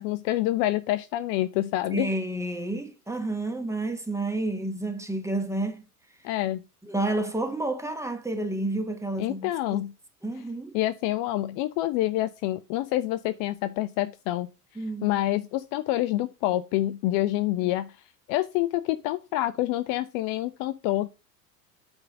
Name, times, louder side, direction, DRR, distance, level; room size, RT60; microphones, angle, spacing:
voice 1, 0.0-2.1 6.2-6.6 9.2-9.9 10.7-14.5 15.0-17.9 18.3-21.1, left 15 dB, 45° left, 0.5 m, -27 dB
voice 2, 1.9-5.8 6.9-9.8 10.2-10.8 14.8-15.1 17.6-17.7, right 2 dB, 5° right, 1.2 m, -30 dB
8.7 x 3.5 x 5.1 m
hypercardioid pair, 85°, 48 cm